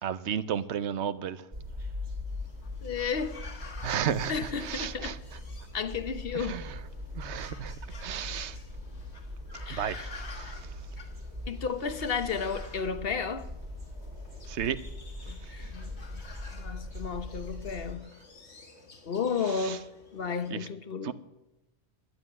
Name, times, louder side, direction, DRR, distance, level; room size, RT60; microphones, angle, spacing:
voice 1, 0.0-1.5 3.8-5.2 6.3-6.8 7.1-7.7 8.0-8.6 9.7-10.7 14.5-14.8 19.5-19.8 20.5-20.7 21.0-21.1, right 8 dB, 85° right, 1.0 m, -33 dB
sound 1, 1.5-18.0, left 1 dB, 40° right, 1.9 m, -41 dB
sound 2, 2.3-20.5, left 3 dB, 80° left, 2.0 m, -51 dB
voice 2, 2.8-3.4 4.3-5.2 5.7-6.6 9.7-10.1 10.4-10.5 11.5-13.5 15.3-16.0 16.5-18.1 19.0-19.9 20.1-21.1, left 6 dB, 60° left, 1.1 m, -33 dB
11.5 x 9.2 x 9.6 m
omnidirectional pair, 1.1 m